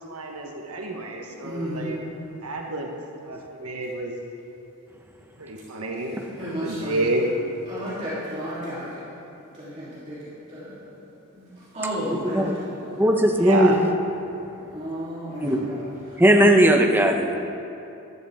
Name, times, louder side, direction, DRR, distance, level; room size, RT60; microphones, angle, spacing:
voice 1, 0.0-2.0 2.4-2.9 3.2-4.2 5.4-7.2 13.4-13.8, right 2 dB, 80° right, 1 dB, 1.3 m, -29 dB
voice 2, 1.4-2.0 6.4-7.1 7.7-9.1 9.5-11.0 11.3-13.1 14.7-16.2, equal, 30° right, -11 dB, 3.2 m, -33 dB
voice 3, 13.0-13.7 15.4-15.6 16.2-17.4, equal, 10° right, 2 dB, 0.8 m, -17 dB
14.5 x 12.5 x 3.7 m, 2.9 s
head